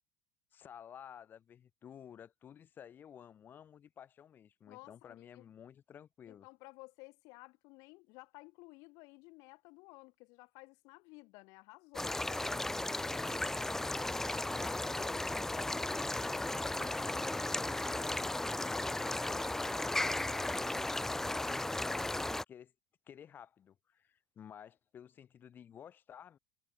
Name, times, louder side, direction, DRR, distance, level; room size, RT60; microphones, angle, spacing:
voice 1, 0.5-6.5 12.9-18.2 18.6-22.2 22.5-22.7 23.1-26.4, left 9 dB, 35° left, 6.1 m, -54 dB
voice 2, 4.7-5.5 6.3-12.8 14.2-15.0, left 26 dB, 65° left, 6.7 m, -55 dB
sound 1, 11.9-22.4, left 2 dB, 5° left, 2.4 m, -35 dB
supercardioid pair, 130°, 6 cm